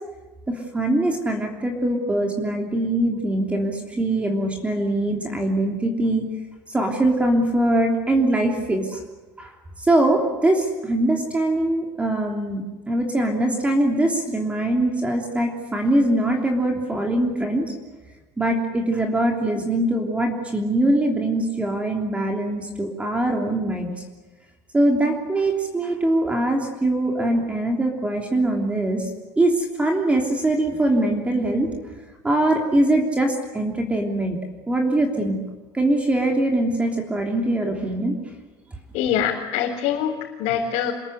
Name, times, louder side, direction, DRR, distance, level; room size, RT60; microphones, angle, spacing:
voice 1, 0.5-6.3 6.7-9.0 9.4-9.5 9.8-17.7 18.4-23.9 24.7-29.1 29.4-31.7 32.2-34.4 34.7-35.4 35.7-38.2, right 1 dB, 10° right, 1 dB, 3.1 m, -22 dB
voice 2, 38.9-40.9, left 9 dB, 75° left, -2 dB, 4.0 m, -24 dB
27.5 x 21.5 x 9.8 m, 1.2 s
cardioid pair, 160°, 11 cm